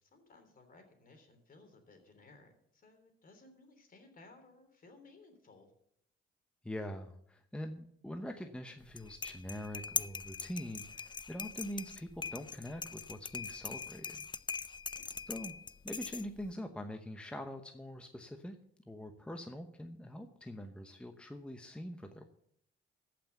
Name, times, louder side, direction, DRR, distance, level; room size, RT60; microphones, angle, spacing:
voice 1, 0.0-5.7 14.9-15.3, left 3 dB, 45° left, 5 dB, 3.3 m, -60 dB
voice 2, 6.6-14.3 15.3-15.5 15.8-18.5 18.9-22.3, left 1 dB, 5° left, 5 dB, 1.0 m, -44 dB
sound 1, 8.8-16.5, left 5 dB, 25° left, 0.5 m, -42 dB
14.5 x 6.0 x 6.7 m, 0.69 s
cardioid pair, 90°, 20 cm